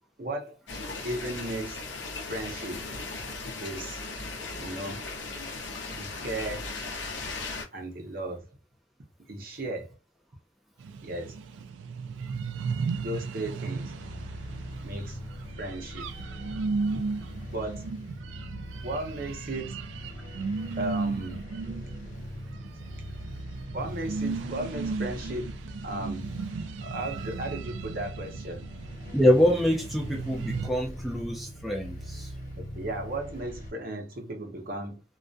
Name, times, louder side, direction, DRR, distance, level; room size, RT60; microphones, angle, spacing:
voice 1, 0.2-0.6 1.0-1.8 2.3-2.8 3.6-4.0 4.6-5.0 5.9-6.7 7.7-8.5 9.3-9.9 11.0-11.4 13.0-13.9 14.8-15.2 15.6-16.1 16.9-17.0 17.5-17.9 18.8-19.8 20.8-21.4 23.7-26.3 26.8-28.7 32.6-35.0, right 1 dB, 50° right, 0.7 m, -35 dB
sound 1, 0.7-7.6, left 3 dB, 80° left, 0.7 m, -37 dB
sound 2, 10.8-30.7, right 4 dB, 90° right, 0.3 m, -36 dB
sound 3, 13.8-33.7, equal, 45° left, 0.9 m, -41 dB
voice 2, 29.1-32.3, equal, ahead, 0.3 m, -25 dB
2.3 x 2.1 x 2.5 m
head